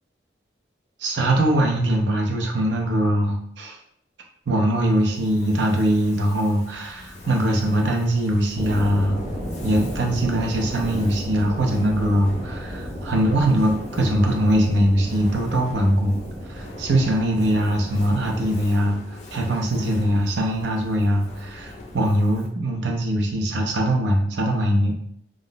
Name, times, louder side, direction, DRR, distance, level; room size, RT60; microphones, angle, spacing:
voice 1, 1.0-3.8 4.5-9.2 9.6-16.2 16.5-24.9, right 1 dB, 85° right, 1 dB, 0.6 m, -22 dB
Fire, 4.7-22.7, left 1 dB, 40° left, 0.4 m, -41 dB
sound 1, 8.5-18.5, equal, 65° right, 1.1 m, -34 dB
2.4 x 2.0 x 3.8 m, 0.68 s
head